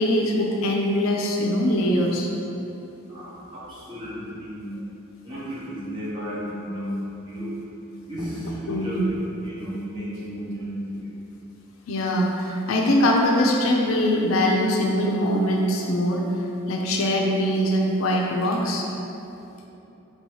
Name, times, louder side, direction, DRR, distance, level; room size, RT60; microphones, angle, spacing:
voice 1, 0.0-2.3 8.7-9.0 11.9-16.2 16.7-18.9, left 1 dB, 75° left, 0 dB, 0.4 m, -22 dB
voice 2, 3.1-4.8 5.2-7.5 8.0-9.2 9.4-11.1, equal, 20° right, -10 dB, 1.1 m, -33 dB
3.8 x 2.8 x 4.5 m, 2.9 s
head